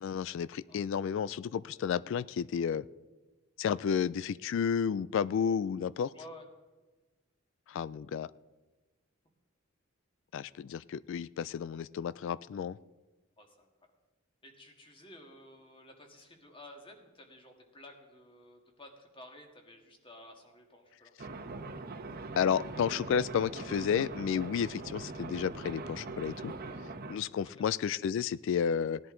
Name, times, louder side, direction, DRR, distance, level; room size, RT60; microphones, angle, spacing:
voice 1, 0.0-2.8 3.6-6.1 7.7-8.3 10.3-12.8 22.4-26.5 27.1-29.0, left 7 dB, 65° left, 19 dB, 0.3 m, -32 dB
voice 2, 6.1-6.4 13.4-13.7 14.4-21.1 27.6-27.7, left 1 dB, 25° left, 3 dB, 1.8 m, -53 dB
sound 1, 21.2-27.2, right 3 dB, 50° right, 1.0 m, -42 dB
17.5 x 10.5 x 3.8 m, 1.2 s
head